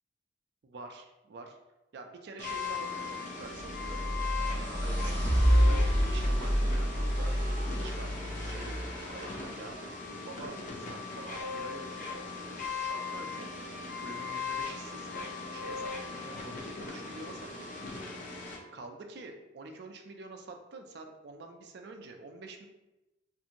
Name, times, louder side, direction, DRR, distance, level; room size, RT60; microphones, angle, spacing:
voice 1, 0.6-1.6 1.9-4.0 4.5-9.7 10.2-13.5 14.0-17.7 18.7-22.7, right 3 dB, 60° right, 4 dB, 0.4 m, -47 dB
sound 1, 2.4-18.6, left 4 dB, 45° left, 0.5 m, -39 dB
sound 2, 3.6-9.7, equal, 20° right, 0.9 m, -28 dB
2.8 x 2.5 x 2.5 m, 0.99 s
head